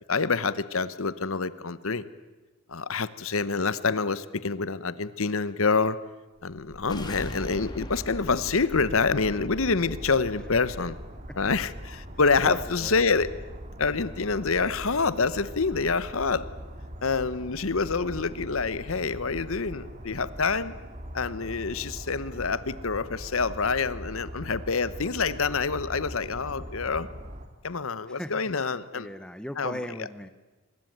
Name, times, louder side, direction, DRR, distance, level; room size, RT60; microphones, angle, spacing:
voice 1, 0.1-2.0 2.7-6.0 6.4-11.0 11.4-13.3 13.8-16.5 17.0-20.7 21.1-27.1 27.6-29.1 29.6-29.8, left 4 dB, 70° left, 16 dB, 1.0 m, -27 dB
sound 1, 6.5-11.6, left 1 dB, 20° left, 2.2 m, -41 dB
sound 2, 8.7-27.5, equal, 35° right, 2.3 m, -41 dB
voice 2, 12.4-13.0 28.1-30.3, equal, 5° left, 12 dB, 0.9 m, -38 dB
24.0 x 21.0 x 9.2 m, 1.2 s
head